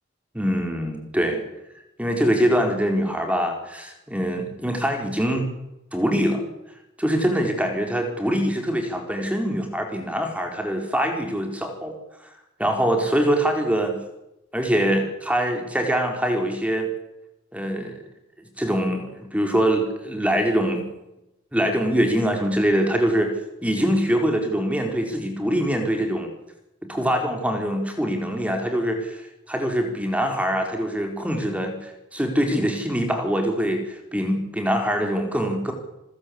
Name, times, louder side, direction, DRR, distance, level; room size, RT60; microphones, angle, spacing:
voice 1, 0.3-1.4 2.0-5.5 5.9-6.4 7.0-11.9 12.6-14.0 14.5-16.9 17.5-18.0 18.6-20.8 21.5-23.3 23.6-26.3 26.8-35.7, equal, 5° right, 4 dB, 4.3 m, -23 dB
28.5 x 15.0 x 8.6 m, 0.90 s
head